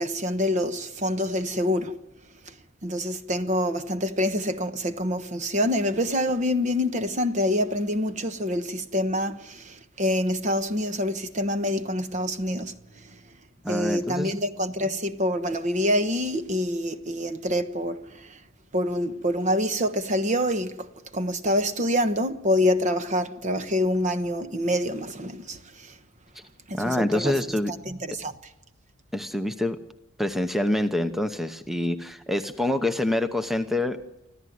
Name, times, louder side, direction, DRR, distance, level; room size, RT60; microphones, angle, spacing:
voice 1, 0.0-2.0 2.5-2.6 2.8-13.2 13.7-18.4 18.7-20.9 21.1-26.0 26.7-27.4 27.7-28.3, left 1 dB, 40° right, 1.2 m, -26 dB
voice 2, 13.6-14.3 26.7-27.7 29.1-29.8 30.2-34.0, left 1 dB, ahead, 0.8 m, -26 dB
25.5 x 15.0 x 9.4 m
head